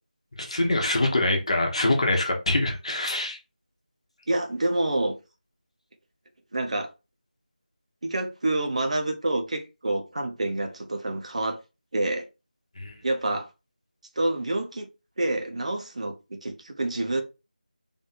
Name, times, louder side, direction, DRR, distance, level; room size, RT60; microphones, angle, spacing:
voice 1, 0.4-3.4 12.8-13.0, left 2 dB, 45° left, 1.1 m, -24 dB
voice 2, 4.3-5.2 6.5-6.9 8.0-11.6 11.9-12.3 13.0-13.5 14.2-14.9 15.2-17.2, right 2 dB, 45° right, 0.8 m, -27 dB
3.4 x 2.6 x 4.3 m
figure-of-eight pair, 170°, 5 cm